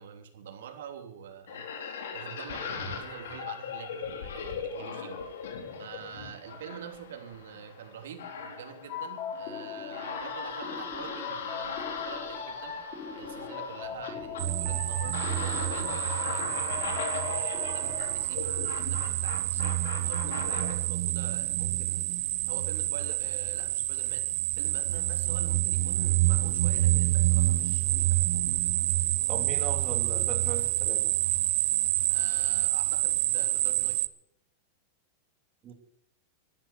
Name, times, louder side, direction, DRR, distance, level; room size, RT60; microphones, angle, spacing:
voice 1, 0.0-1.7 2.1-5.2 5.8-12.8 13.1-15.9 16.2-22.1 22.5-28.4 32.1-34.0, right 8 dB, 80° right, 5 dB, 3.0 m, -46 dB
sound 1, 1.5-20.7, left 5 dB, 85° left, 3.8 m, -39 dB
sound 2, 8.9-18.1, left 6 dB, 40° left, 4.1 m, -39 dB
sound 3, 14.4-34.1, right 17 dB, 55° right, 0.7 m, -28 dB
voice 2, 29.3-31.1 35.6-35.7, right 7 dB, 25° right, 4 dB, 2.7 m, -38 dB
12.5 x 12.5 x 6.9 m, 0.72 s
supercardioid pair, 160°, 0 cm